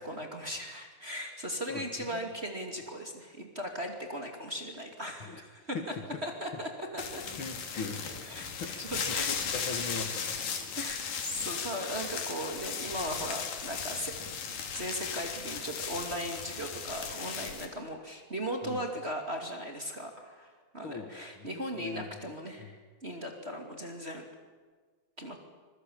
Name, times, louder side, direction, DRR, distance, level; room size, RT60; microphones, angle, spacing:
voice 1, 0.0-5.8 6.2-7.2 8.3-9.3 9.8-10.0 10.8-24.2 25.2-25.4, equal, 20° right, 3 dB, 2.4 m, -38 dB
voice 2, 1.7-2.3 5.2-5.4 5.7-6.2 7.4-8.7 9.1-10.8 18.6-18.8 20.8-22.2 22.6-22.7 23.9-24.0, left 4 dB, 45° left, 4 dB, 2.1 m, -41 dB
sound 1, 7.0-17.7, left 6 dB, 80° left, 4.1 m, -36 dB
26.0 x 22.0 x 8.7 m, 1.5 s
omnidirectional pair, 3.8 m